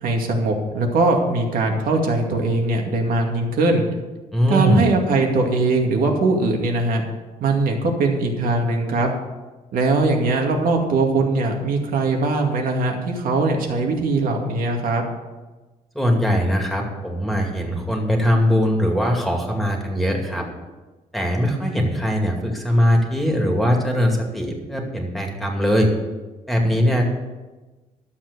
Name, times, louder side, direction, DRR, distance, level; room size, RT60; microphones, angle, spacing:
voice 1, 0.0-3.8 4.5-7.0 7.4-9.1 9.7-15.0, right 3 dB, 75° right, 2 dB, 2.3 m, -21 dB
voice 2, 4.3-4.8 15.9-20.5 21.1-25.9 26.5-27.1, equal, ahead, 1 dB, 2.4 m, -21 dB
12.0 x 7.5 x 6.8 m, 1.2 s
cardioid pair, 125°, 15 cm